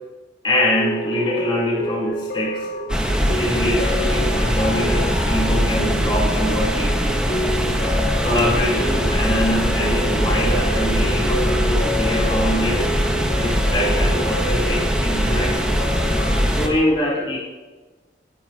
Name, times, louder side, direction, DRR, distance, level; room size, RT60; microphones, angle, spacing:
voice 1, 0.4-2.7 3.4-7.0 7.8-12.9 13.3-15.8 16.5-17.4, left 1 dB, 30° left, -4 dB, 3.8 m, -24 dB
sound 1, 0.5-16.6, left 1 dB, 60° left, 1.5 m, -29 dB
sound 2, 2.9-16.7, equal, 5° right, 1.6 m, -21 dB
26.0 x 11.0 x 3.0 m, 1.2 s
head